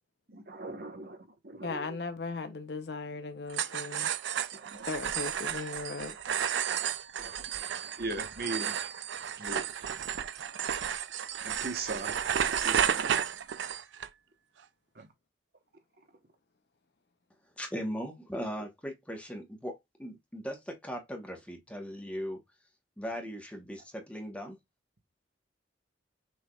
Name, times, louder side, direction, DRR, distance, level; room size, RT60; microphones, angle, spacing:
voice 1, 0.3-2.0 4.5-4.9 7.2-7.4 8.0-8.8 9.4-9.6 11.4-13.3 14.9-15.1, right 2 dB, 55° right, 1.1 m, -39 dB
voice 2, 1.6-4.1 4.8-6.2, left 3 dB, 65° left, 0.7 m, -37 dB
sound 1, 3.5-14.1, right 8 dB, 80° right, 0.4 m, -32 dB
voice 3, 17.6-22.4 23.0-24.6, equal, 5° left, 1.1 m, -38 dB
6.3 x 3.5 x 2.3 m
head